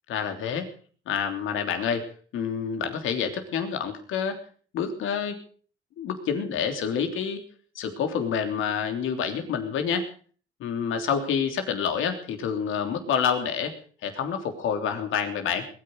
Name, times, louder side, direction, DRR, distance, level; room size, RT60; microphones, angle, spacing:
voice 1, 0.1-0.7 1.1-2.0 2.3-4.4 4.7-5.3 6.0-7.4 7.7-10.1 10.6-13.7 14.0-15.7, left 7 dB, 85° left, 6 dB, 3.3 m, -28 dB
21.0 x 10.0 x 6.6 m, 0.44 s
cardioid pair, 90°, 20 cm